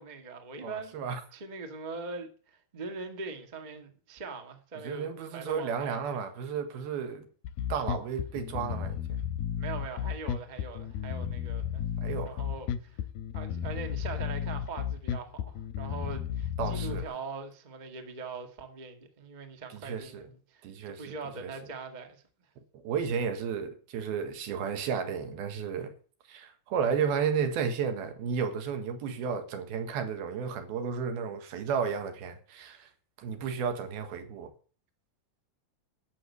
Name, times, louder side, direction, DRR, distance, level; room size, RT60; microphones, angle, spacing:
voice 1, 0.0-1.0 1.3-6.2 9.6-11.9 12.2-13.0 13.3-22.2, right 4 dB, 45° right, 0.5 m, -42 dB
voice 2, 0.6-1.2 4.8-7.3 7.7-9.0 12.0-12.4 16.6-17.1 19.7-20.3 20.6-21.5 22.7-25.9 26.3-32.9 33.2-34.5, right 6 dB, 75° right, 3.4 m, -33 dB
Bass guitar, 7.4-17.0, left 9 dB, 80° left, 2.7 m, -33 dB
11.5 x 7.5 x 8.3 m
omnidirectional pair, 4.6 m